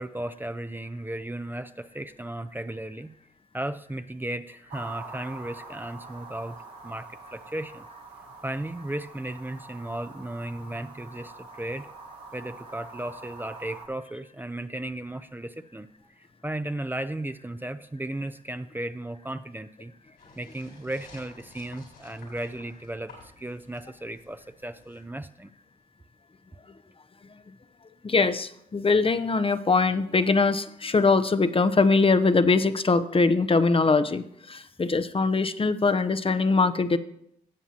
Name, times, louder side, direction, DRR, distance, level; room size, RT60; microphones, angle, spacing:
voice 1, 0.0-3.1 3.5-6.6 6.8-7.9 8.4-11.9 12.3-15.9 16.2-19.9 20.4-25.5, right 1 dB, 10° right, 11 dB, 0.5 m, -35 dB
sound 1, 4.7-13.9, right 3 dB, 80° right, 1.3 m, -45 dB
sound 2, 20.2-25.0, left 3 dB, 85° left, 4.2 m, -52 dB
voice 2, 28.0-37.0, left 4 dB, 35° left, 12 dB, 0.7 m, -22 dB
16.5 x 7.2 x 2.9 m, 0.74 s
supercardioid pair, 45°, 16 cm